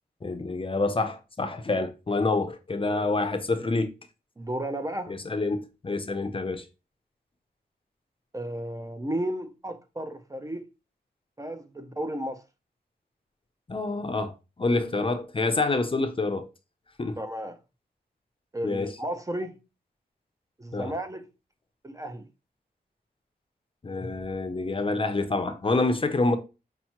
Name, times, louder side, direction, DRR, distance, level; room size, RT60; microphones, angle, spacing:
voice 1, 0.2-3.9 5.1-6.6 13.7-16.5 17.0-17.2 18.6-18.9 20.7-20.9 23.8-26.4, left 3 dB, 30° left, 0.5 m, -27 dB
voice 2, 4.4-5.2 8.3-10.7 11.4-12.4 17.2-17.6 18.5-19.6 20.6-21.3 21.8-22.3, right 1 dB, 20° right, 0.4 m, -33 dB
5.6 x 2.0 x 2.8 m
wide cardioid pair, 70°, 17 cm